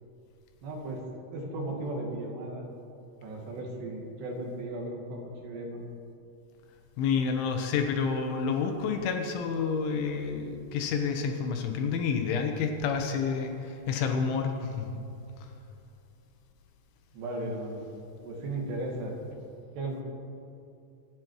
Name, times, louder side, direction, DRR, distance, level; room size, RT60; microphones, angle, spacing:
voice 1, 0.6-1.0 1.3-2.6 3.2-5.8 17.1-17.9 18.2-19.2 19.7-20.0, right 1 dB, 65° right, 0 dB, 4.0 m, -36 dB
voice 2, 7.0-15.0, left 5 dB, 75° left, 5 dB, 3.4 m, -29 dB
24.0 x 9.5 x 4.7 m, 2.6 s
omnidirectional pair, 5.6 m